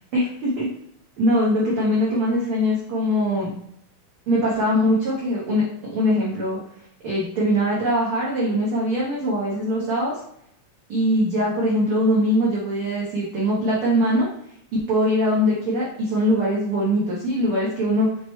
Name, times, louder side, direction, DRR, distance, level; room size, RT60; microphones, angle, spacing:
voice 1, 0.1-0.7 1.2-3.5 4.3-6.6 7.0-10.2 10.9-14.3 14.7-18.1, equal, 85° right, -6 dB, 1.2 m, -22 dB
5.9 x 2.1 x 3.0 m, 0.71 s
omnidirectional pair, 3.7 m